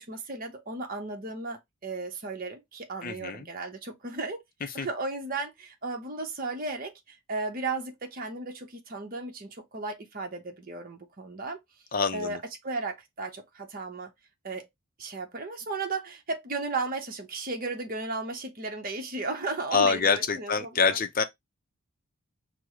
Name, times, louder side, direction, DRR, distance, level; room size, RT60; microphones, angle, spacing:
voice 1, 0.0-4.4 4.7-11.6 12.1-12.4 12.6-14.1 14.4-14.7 15.0-21.0, right 3 dB, 40° right, 0.8 m, -35 dB
voice 2, 3.0-3.5 4.8-4.9 11.9-12.4 19.7-21.2, left 5 dB, 40° left, 0.5 m, -26 dB
4.7 x 2.1 x 3.5 m
head